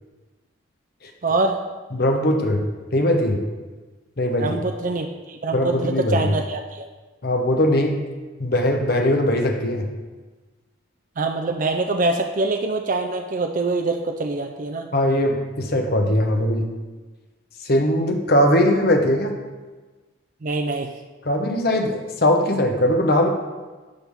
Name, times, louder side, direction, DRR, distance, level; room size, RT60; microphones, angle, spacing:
voice 1, 1.2-1.6 4.4-6.9 11.2-14.9 20.4-20.9, right 3 dB, 40° right, 4 dB, 0.4 m, -24 dB
voice 2, 1.9-2.6 2.9-3.4 4.2-4.6 5.5-6.3 7.2-8.0 8.4-9.9 14.9-16.7 17.6-19.3 21.2-23.3, left 1 dB, 50° left, 3 dB, 0.9 m, -20 dB
10.5 x 5.6 x 3.6 m, 1.3 s
head